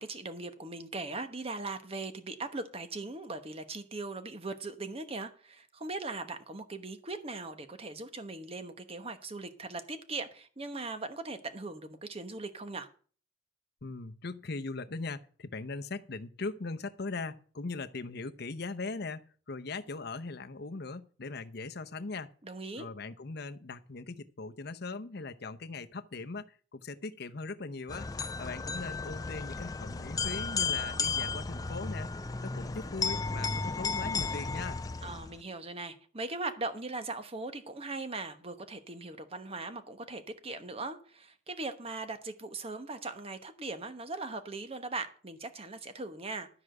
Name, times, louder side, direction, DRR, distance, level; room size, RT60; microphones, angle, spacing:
voice 1, 0.0-12.9 22.4-22.9 35.0-46.5, right 3 dB, 30° right, 1.1 m, -39 dB
voice 2, 13.8-22.3 22.8-28.1 28.4-32.1 32.4-34.8, left 3 dB, 55° left, 0.8 m, -40 dB
sound 1, 27.9-35.4, left 4 dB, 20° left, 0.4 m, -34 dB
12.5 x 4.9 x 7.8 m
head